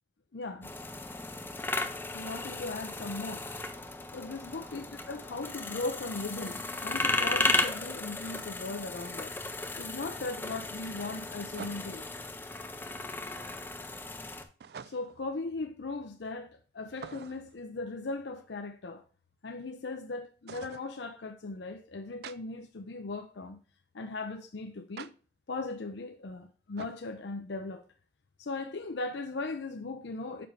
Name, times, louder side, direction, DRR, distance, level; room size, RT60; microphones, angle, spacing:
voice 1, 0.3-0.7 2.1-3.5 4.1-9.4 9.8-12.1 14.8-19.0 19.4-23.6 23.9-25.1 25.5-27.8 28.4-30.5, left 3 dB, 70° left, 0.6 m, -38 dB
sound 1, 0.6-14.4, left 2 dB, 10° left, 0.5 m, -35 dB
sound 2, 11.5-12.1 14.6-15.3 16.9-17.6 20.5-20.9 22.2-22.4 25.0-25.1 26.8-27.1, right 6 dB, 60° right, 0.3 m, -45 dB
6.8 x 5.1 x 3.2 m
head